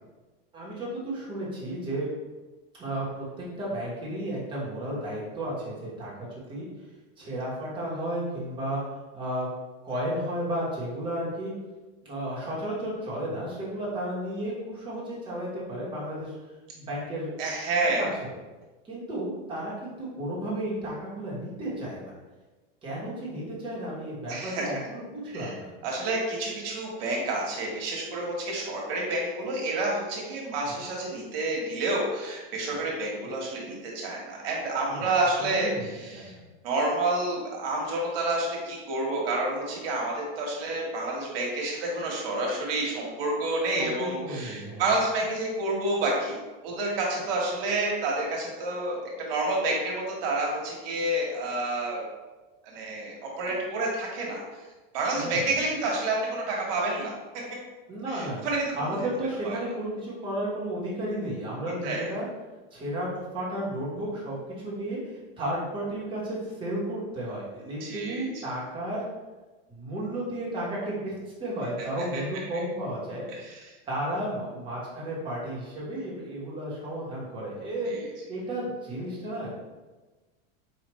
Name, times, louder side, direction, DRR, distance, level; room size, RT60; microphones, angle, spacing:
voice 1, 0.5-2.1 2.8-6.7 7.2-8.8 9.1-9.5 9.8-11.5 12.0-17.4 18.0-18.3 18.8-22.1 22.8-25.7 34.9-35.1 35.5-36.4 43.8-44.9 55.1-55.5 57.9-58.5 58.7-62.3 62.7-63.1 63.3-69.0 69.7-71.1 71.4-73.2 73.9-77.9 78.3-79.5, right 1 dB, 15° right, -7 dB, 1.1 m, -33 dB
voice 2, 17.4-18.1 24.3-24.7 25.3-25.5 25.8-36.3 36.6-49.0 49.3-52.0 52.6-54.6 54.9-57.4 58.1-59.1 59.4-59.6 61.8-62.1 67.8-68.4 72.1-72.2 73.3-73.6 77.9-78.0, right 2 dB, 70° right, -2 dB, 1.3 m, -29 dB
4.8 x 2.5 x 3.0 m, 1.2 s
supercardioid pair, 160°, 30 cm